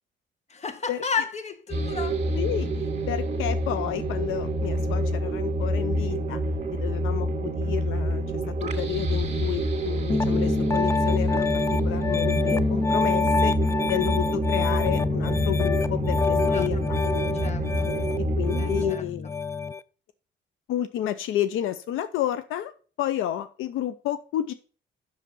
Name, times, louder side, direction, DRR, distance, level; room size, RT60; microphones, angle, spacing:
voice 1, 0.5-2.2 16.4-17.9 18.6-19.0, left 5 dB, 35° left, 1.3 m, -33 dB
sound 1, 1.7-18.9, right 1 dB, 35° right, 2.1 m, -27 dB
voice 2, 2.3-2.7 3.1-6.4 6.7-8.2 8.6-13.5 13.8-17.0 17.8-19.3 20.7-22.7 23.0-24.5, left 12 dB, 85° left, 0.6 m, -31 dB
Piano, 10.1-19.8, left 3 dB, 15° left, 0.4 m, -26 dB
7.6 x 6.5 x 5.3 m
cardioid pair, 90°, 20 cm